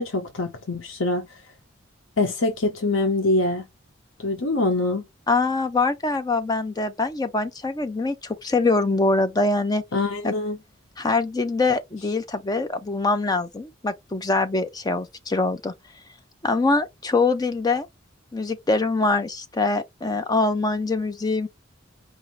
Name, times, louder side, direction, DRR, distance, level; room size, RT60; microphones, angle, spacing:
voice 1, 0.0-1.4 2.2-3.7 4.2-5.1 9.9-10.6, left 2 dB, 90° left, 1.0 m, -24 dB
voice 2, 5.3-9.8 10.2-10.3 11.0-15.7 16.4-17.9 18.3-21.5, left 3 dB, 20° left, 0.5 m, -23 dB
4.9 x 2.6 x 3.1 m
head